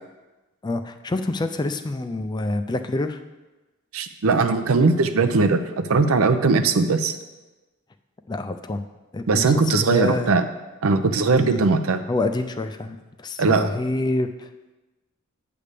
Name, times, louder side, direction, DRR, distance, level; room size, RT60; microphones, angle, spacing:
voice 1, 0.6-3.2 8.3-8.8 9.1-9.5 9.9-10.4 11.3-11.6 12.1-14.5, left 2 dB, 20° left, 8 dB, 0.3 m, -27 dB
voice 2, 3.9-7.1 9.3-10.4 10.8-12.0 13.4-13.7, right 4 dB, 80° right, 9 dB, 0.6 m, -19 dB
8.6 x 3.4 x 6.7 m, 1.1 s
head